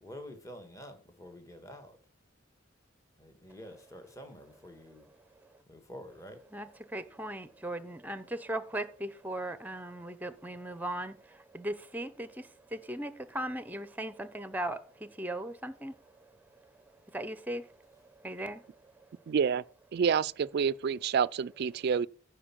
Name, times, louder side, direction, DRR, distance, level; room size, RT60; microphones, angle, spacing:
voice 1, 0.0-2.0 3.2-5.1 5.7-6.4, equal, 15° left, 1.5 m, -48 dB
voice 2, 6.5-16.3 16.6-16.7 17.1-18.9, right 1 dB, 10° right, 0.7 m, -38 dB
voice 3, 19.3-19.6 19.9-22.1, right 6 dB, 50° right, 0.3 m, -28 dB
10.0 x 4.5 x 7.3 m
head